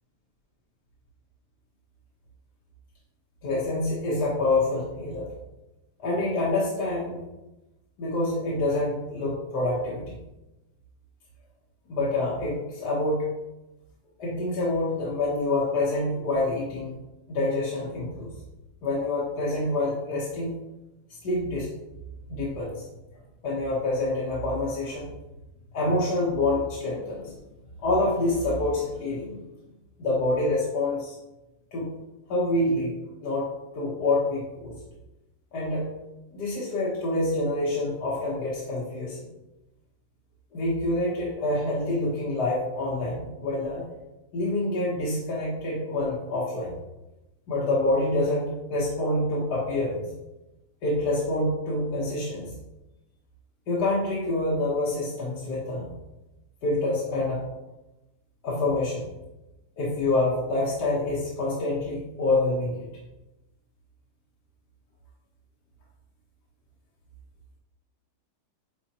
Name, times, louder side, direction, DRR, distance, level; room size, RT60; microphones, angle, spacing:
voice 1, 3.4-5.3 6.0-7.2 8.0-10.2 11.9-13.3 14.2-16.9 17.3-18.3 18.8-20.5 21.2-21.7 22.3-22.8 23.4-25.1 25.7-27.3 27.8-29.4 30.0-31.1 31.7-31.9 32.3-33.5 33.7-34.8 35.5-35.9 36.3-39.2 40.5-43.8 44.3-46.7 47.5-50.1 50.8-52.5 53.7-55.9 56.6-57.4 58.4-59.1 59.8-62.9, left 2 dB, 75° left, -6 dB, 1.8 m, -27 dB
9.1 x 4.2 x 2.9 m, 1.0 s
omnidirectional pair, 1.8 m